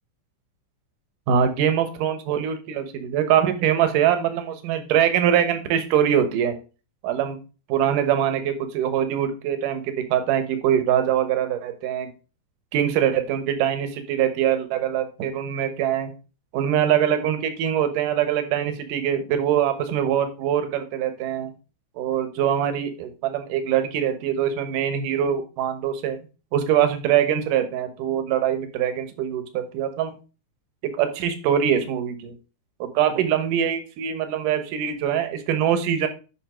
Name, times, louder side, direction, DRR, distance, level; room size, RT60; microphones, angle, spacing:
voice 1, 1.3-6.6 7.0-7.4 7.7-12.1 12.7-16.1 16.5-21.5 22.0-26.2 26.5-30.2 30.9-32.3 32.8-36.1, right 9 dB, 85° right, 9 dB, 2.7 m, -23 dB
8.6 x 5.7 x 4.9 m, 0.33 s
omnidirectional pair, 3.6 m